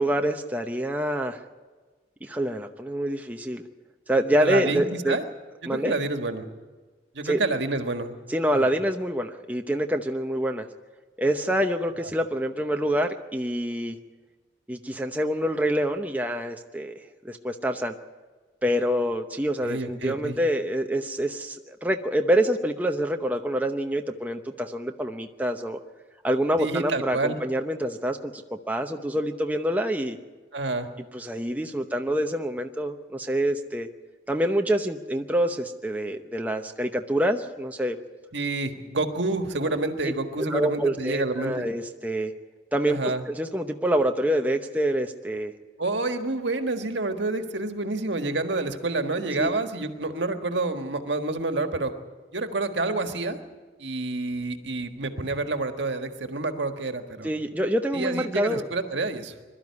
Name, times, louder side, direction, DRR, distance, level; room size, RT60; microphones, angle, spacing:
voice 1, 0.0-1.4 2.2-3.6 4.1-5.2 5.7-6.0 7.2-7.4 8.3-10.7 11.2-14.0 14.7-17.9 18.6-25.8 26.2-30.2 31.1-33.9 34.3-38.0 40.5-42.3 42.7-43.0 43.3-45.5 49.4-49.5 57.2-58.7, right 1 dB, 10° right, 4 dB, 0.8 m, -26 dB
voice 2, 4.4-5.3 5.6-6.5 7.1-8.1 8.5-8.7 19.6-20.4 26.6-27.4 30.5-30.9 38.3-41.7 42.9-43.2 45.8-51.9 52.3-53.4 53.8-57.3 57.9-59.3, right 2 dB, 80° right, 6 dB, 1.6 m, -28 dB
22.0 x 13.0 x 9.6 m, 1.3 s
head